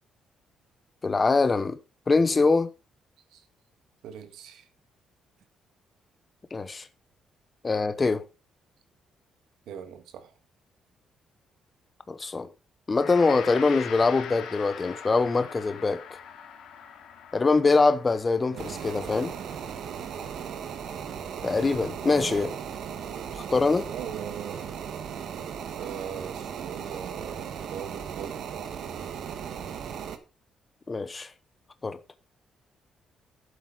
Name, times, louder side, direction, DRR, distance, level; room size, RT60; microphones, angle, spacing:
voice 1, 1.0-1.8 2.1-2.7 6.5-6.9 7.6-8.3 12.1-12.5 12.9-16.0 17.3-19.3 21.4-22.5 23.3-23.9 30.9-31.3 31.8-32.0, left 3 dB, 20° left, 0.8 m, -23 dB
voice 2, 2.1-2.5 3.3-3.4 4.0-4.7 9.7-10.3 18.5-18.9 21.9-22.6 23.9-24.8 25.7-28.7, right 8 dB, 80° right, 1.7 m, -40 dB
Gong, 12.9-22.3, left 8 dB, 70° left, 2.4 m, -43 dB
sound 1, 18.6-30.2, right 8 dB, 55° right, 1.4 m, -37 dB
12.0 x 8.1 x 3.9 m
cardioid pair, 180°, 0 cm